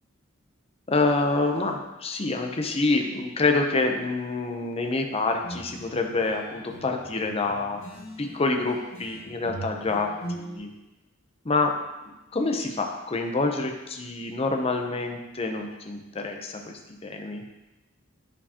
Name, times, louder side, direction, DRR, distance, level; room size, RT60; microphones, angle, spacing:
voice 1, 0.9-7.8 8.2-10.7 11.4-11.8 12.3-17.4, left 3 dB, 30° left, 3 dB, 0.6 m, -27 dB
sound 1, 5.3-10.6, right 1 dB, 80° left, 1.8 m, -41 dB
8.4 x 4.4 x 2.8 m, 1.0 s
head